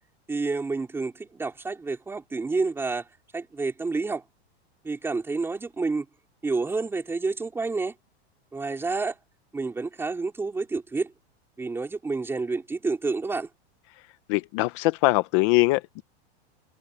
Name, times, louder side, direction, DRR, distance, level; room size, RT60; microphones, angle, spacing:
voice 1, 0.3-3.1 3.3-4.2 4.8-6.1 6.4-7.9 8.5-9.2 9.5-11.1 11.6-13.5, right 3 dB, 5° right, 3.6 m, -29 dB
voice 2, 14.3-16.0, left 21 dB, 30° left, 0.5 m, -22 dB
supercardioid pair, 170°, 33 cm